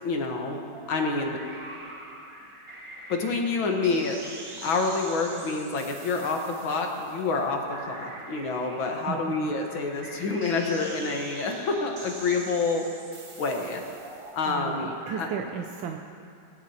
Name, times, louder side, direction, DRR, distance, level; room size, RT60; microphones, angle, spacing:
voice 1, 0.0-0.6 0.9-1.4 3.1-4.2 4.6-12.9 13.4-13.8 14.3-14.9 15.2-15.3, left 3 dB, 65° left, 2 dB, 2.1 m, -27 dB
sound 1, 0.7-15.4, right 2 dB, 55° right, 0.3 m, -44 dB
voice 2, 9.1-9.5 14.5-16.0, right 7 dB, 70° right, 3 dB, 1.4 m, -35 dB
21.5 x 17.0 x 2.9 m, 2.5 s
omnidirectional pair, 2.3 m